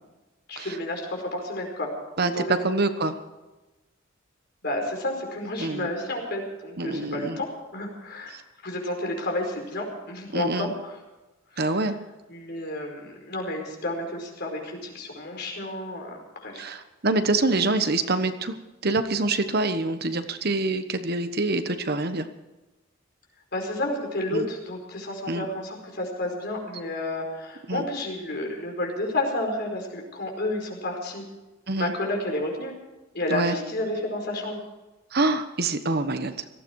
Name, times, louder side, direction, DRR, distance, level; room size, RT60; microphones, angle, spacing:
voice 1, 0.5-1.9 2.3-2.6 4.6-7.5 7.7-11.0 11.5-11.8 12.3-16.7 23.5-31.2 31.8-32.7 33.1-34.6, left 1 dB, 55° left, 1 dB, 4.9 m, -31 dB
voice 2, 2.2-3.2 5.6-5.9 6.8-7.4 8.3-8.4 10.3-10.7 11.6-12.0 16.6-18.6 18.8-22.3 24.3-24.5 25.3-25.5 27.7-27.8 31.7-31.9 33.3-33.5 35.1-36.3, right 2 dB, 50° right, 9 dB, 1.2 m, -25 dB
18.5 x 15.0 x 4.7 m, 1.1 s
head